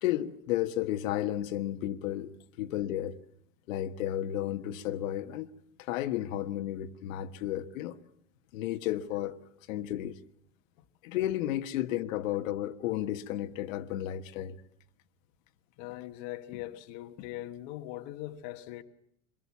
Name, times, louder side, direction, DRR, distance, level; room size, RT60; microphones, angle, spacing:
voice 1, 0.0-3.2 3.7-5.5 5.8-8.0 8.5-9.4 9.7-10.2 11.0-14.6, left 13 dB, 75° left, 1.5 m, -33 dB
voice 2, 15.8-18.8, left 14 dB, 40° left, 1.3 m, -41 dB
25.0 x 22.0 x 8.4 m
supercardioid pair, 165°, 40 cm